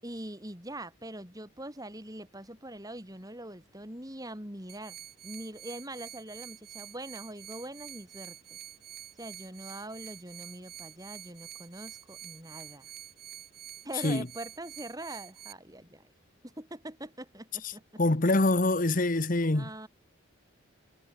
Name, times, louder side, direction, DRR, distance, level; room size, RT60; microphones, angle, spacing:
voice 1, 0.0-5.0 5.2-8.6 9.2-12.9 13.8-16.0 16.4-18.0 19.5-19.9, right 1 dB, 15° right, 5.4 m, -43 dB
sound 1, 4.7-15.5, right 12 dB, 45° right, 3.4 m, -47 dB
voice 2, 18.0-19.7, left 2 dB, 40° left, 1.2 m, -25 dB
head